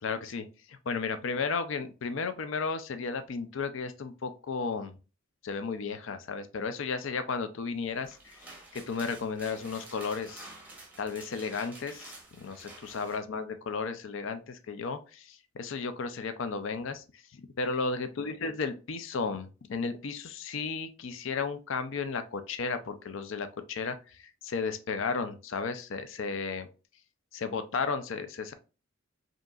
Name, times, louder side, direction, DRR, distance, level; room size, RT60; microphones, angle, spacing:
voice 1, 0.0-4.9 5.4-8.4 8.7-10.5 11.0-17.0 17.4-26.7 27.3-28.5, left 4 dB, 65° left, 9 dB, 0.4 m, -34 dB
sound 1, 7.9-13.2, right 2 dB, 10° right, 0.9 m, -49 dB
5.0 x 2.9 x 2.4 m, 0.32 s
head